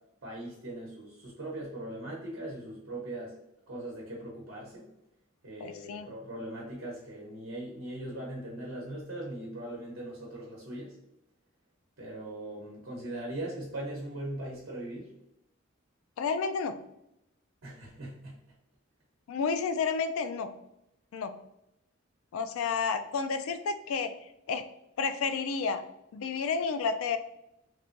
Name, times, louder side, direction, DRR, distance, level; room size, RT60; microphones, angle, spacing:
voice 1, 0.2-3.3 3.7-4.9 5.4-11.0 12.0-15.1 17.6-18.4, right 1 dB, 85° right, -3 dB, 0.8 m, -40 dB
voice 2, 5.6-6.1 16.2-16.8 19.3-20.5 21.1-21.3 22.3-24.1 24.5-24.6 25.0-25.8 26.1-27.2, left 5 dB, 80° left, 11 dB, 0.3 m, -30 dB
3.1 x 2.5 x 2.5 m, 0.84 s
head